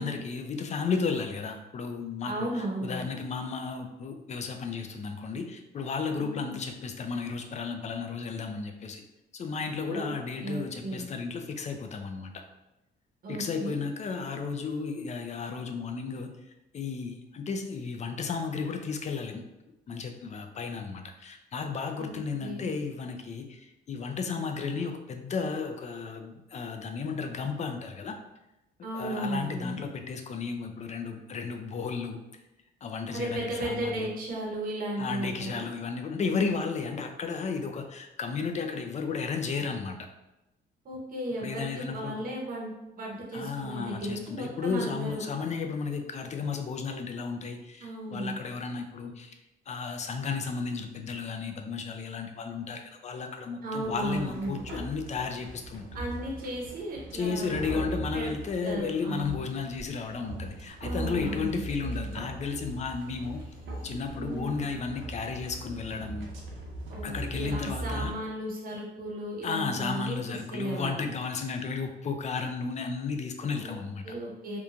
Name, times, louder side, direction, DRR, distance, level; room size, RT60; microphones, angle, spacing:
voice 1, 0.0-9.0 9.3-12.3 13.3-16.3 16.7-19.5 19.9-28.2 28.9-32.2 32.8-34.1 35.0-40.0 41.4-42.2 43.3-49.4 49.7-55.9 57.1-63.4 63.8-66.3 67.0-68.1 69.4-74.0, left 5 dB, 35° left, 5 dB, 0.4 m, -33 dB
voice 2, 2.2-3.1 6.1-6.5 9.9-10.1 10.4-11.1 13.2-13.8 22.0-22.7 28.8-29.8 33.1-35.7 40.8-45.2 47.8-48.4 53.6-54.6 55.9-57.8 58.1-58.3 58.6-59.5 60.8-61.6 64.1-64.6 66.9-71.0 73.6-73.8 74.0-74.6, right 1 dB, 45° right, -3 dB, 0.7 m, -35 dB
sound 1, 53.8-68.1, right 1 dB, 80° right, 0.7 m, -40 dB
2.9 x 2.2 x 2.5 m, 0.95 s
cardioid pair, 90°, 20 cm